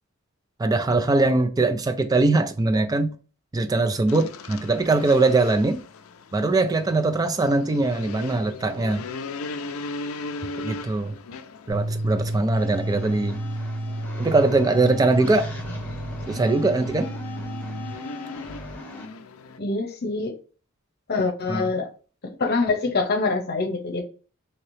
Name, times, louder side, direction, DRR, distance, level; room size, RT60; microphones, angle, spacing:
voice 1, 0.6-3.1 3.5-5.8 6.3-9.0 10.6-11.1 11.7-13.4 14.2-15.5 16.3-17.1 21.5-21.6, right 3 dB, 20° right, 0.3 m, -21 dB
sound 1, 4.1-19.6, left 3 dB, 85° left, 0.4 m, -39 dB
sound 2, 11.7-17.9, right 1 dB, 70° right, 0.8 m, -31 dB
sound 3, 12.6-19.1, left 1 dB, 10° left, 0.8 m, -39 dB
voice 2, 19.6-20.3 21.1-21.9 22.2-24.0, left 3 dB, 50° left, 0.8 m, -25 dB
2.9 x 2.9 x 3.1 m
head